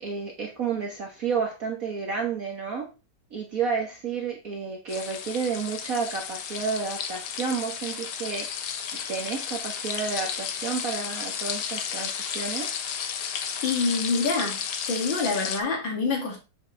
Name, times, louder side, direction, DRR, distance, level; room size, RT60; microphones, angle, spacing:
voice 1, 0.0-2.9 3.3-8.5 9.1-12.7, right 5 dB, 45° right, 1.5 m, -31 dB
sound 1, 4.9-15.6, left 7 dB, 90° left, 1.9 m, -33 dB
voice 2, 13.6-14.6 14.9-16.4, left 4 dB, 65° left, 3.1 m, -26 dB
8.0 x 7.5 x 3.3 m
omnidirectional pair, 2.2 m